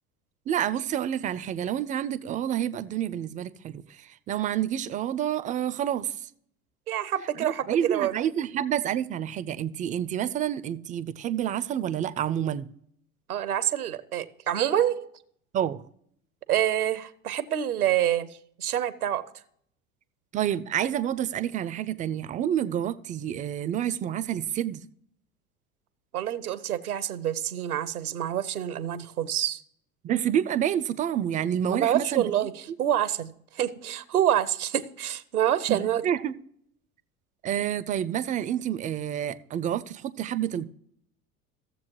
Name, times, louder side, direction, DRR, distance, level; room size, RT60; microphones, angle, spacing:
voice 1, 0.5-3.8 4.3-6.1 7.4-12.7 15.5-15.8 20.3-24.8 30.0-32.3 35.7-36.4 37.4-40.6, right 10 dB, 20° right, 0.3 m, -28 dB
voice 2, 6.9-8.1 13.3-15.1 16.5-19.2 26.1-29.6 31.7-32.5 32.8-36.0, right 11 dB, 85° right, 0.7 m, -27 dB
15.0 x 7.3 x 3.0 m
figure-of-eight pair, 75°, 43 cm